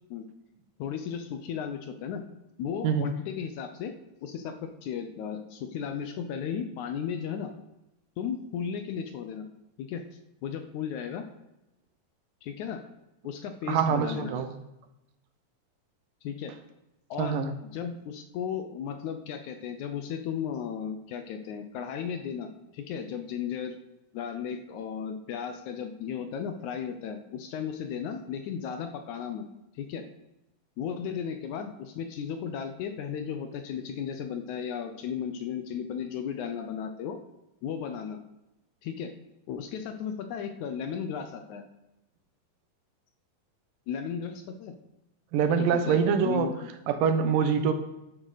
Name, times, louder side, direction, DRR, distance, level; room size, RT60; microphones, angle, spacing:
voice 1, 0.8-2.2 2.6-3.9 4.2-7.5 8.2-9.5 9.8-10.0 10.4-11.2 12.4-12.8 13.2-14.3 16.2-16.5 17.1-17.4 17.7-22.5 22.7-23.8 24.1-29.5 29.8-30.1 30.8-37.2 37.6-38.2 38.8-39.1 39.5-41.6 43.9-44.7 45.6-46.0 46.2-46.7, left 7 dB, 75° left, 7 dB, 2.0 m, -35 dB
voice 2, 13.7-14.5 17.2-17.5 45.3-46.5 46.9-47.7, right 6 dB, 80° right, 8 dB, 2.6 m, -24 dB
11.5 x 11.0 x 4.1 m, 0.92 s
omnidirectional pair, 3.9 m